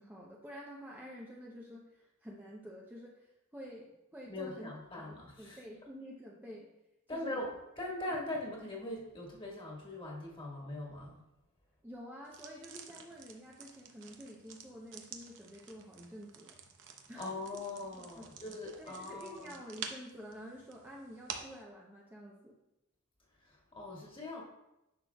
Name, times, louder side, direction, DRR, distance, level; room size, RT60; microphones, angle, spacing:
voice 1, 0.0-3.3 3.5-4.7 5.1-6.7 7.1-7.4 11.8-16.6 17.1-17.6 18.0-18.3 18.8-22.6, equal, 10° right, -3 dB, 0.7 m, -49 dB
voice 2, 4.3-5.6 7.1-11.2 17.2-19.6 23.4-24.4, left 2 dB, 25° left, -3 dB, 1.6 m, -41 dB
sound 1, 12.3-21.6, right 6 dB, 60° right, 0.8 m, -50 dB
10.5 x 6.2 x 2.3 m, 0.90 s
head